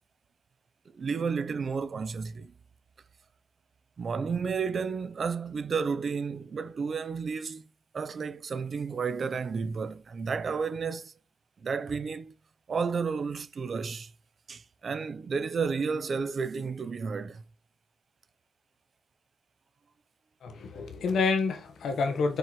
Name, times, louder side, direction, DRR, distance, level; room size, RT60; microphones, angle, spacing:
voice 1, 1.0-2.5 4.0-7.6 7.9-11.1 11.6-12.3 12.7-14.1 14.5-17.4, right 5 dB, 65° right, 0.8 m, -32 dB
voice 2, 20.4-22.4, left 4 dB, 90° left, 1.5 m, -28 dB
6.5 x 4.7 x 3.3 m
cardioid pair, 60°, 0 cm